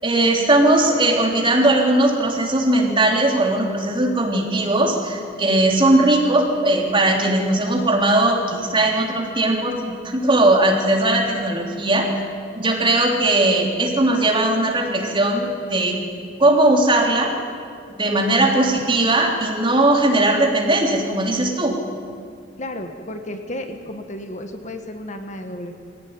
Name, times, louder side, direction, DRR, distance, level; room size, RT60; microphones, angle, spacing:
voice 1, 0.0-12.1 12.5-16.0 16.4-17.3 18.0-21.8, right 2 dB, 30° right, 0 dB, 3.6 m, -18 dB
voice 2, 22.6-25.8, left 1 dB, 40° left, 5 dB, 1.6 m, -33 dB
22.0 x 17.5 x 9.9 m, 2.3 s
head